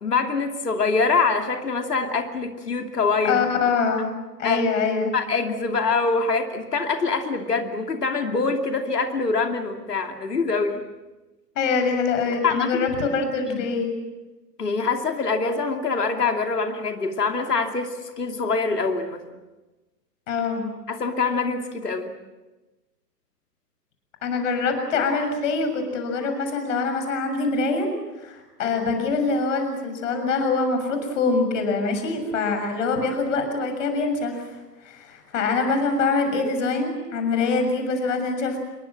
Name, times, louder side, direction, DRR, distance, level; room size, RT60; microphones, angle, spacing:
voice 1, 0.0-3.4 4.4-4.6 5.1-10.8 12.4-12.9 13.5-13.7 14.6-19.2 20.9-22.1, left 4 dB, 70° left, 5 dB, 2.8 m, -24 dB
voice 2, 3.2-4.1 4.4-5.1 11.6-13.9 20.3-20.7 24.2-27.9 28.2-34.6 34.8-38.6, left 4 dB, 50° left, 6 dB, 6.9 m, -24 dB
28.0 x 23.0 x 7.6 m, 1.1 s
figure-of-eight pair, 110°, 48 cm